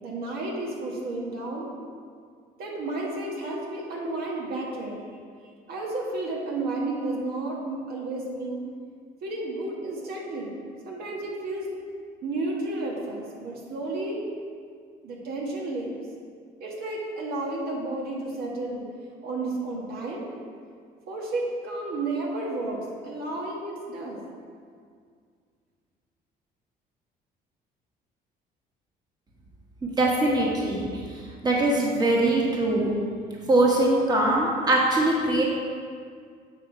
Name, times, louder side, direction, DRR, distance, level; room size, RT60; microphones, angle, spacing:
voice 1, 0.0-1.7 2.6-5.0 5.7-8.6 9.2-10.5 10.8-11.7 12.2-14.2 15.0-15.9 16.6-18.8 19.2-20.3 21.1-24.2, right 2 dB, 70° right, -2 dB, 1.6 m, -32 dB
voice 2, 29.8-30.9 31.4-33.0 33.5-35.5, right 2 dB, 25° right, -3 dB, 1.4 m, -22 dB
8.6 x 4.5 x 4.7 m, 2.1 s
cardioid pair, 110°, 17 cm